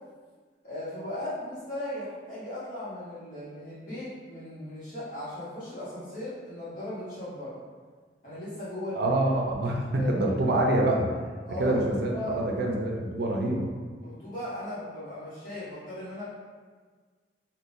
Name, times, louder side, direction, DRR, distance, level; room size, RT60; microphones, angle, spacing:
voice 1, 0.6-7.6 8.2-9.2 9.9-10.2 11.4-12.5 14.0-16.2, left 1 dB, 50° left, -11 dB, 1.0 m, -37 dB
voice 2, 8.9-11.1 11.5-13.7, right 1 dB, 65° right, 0 dB, 0.5 m, -26 dB
3.7 x 2.2 x 2.5 m, 1.5 s
head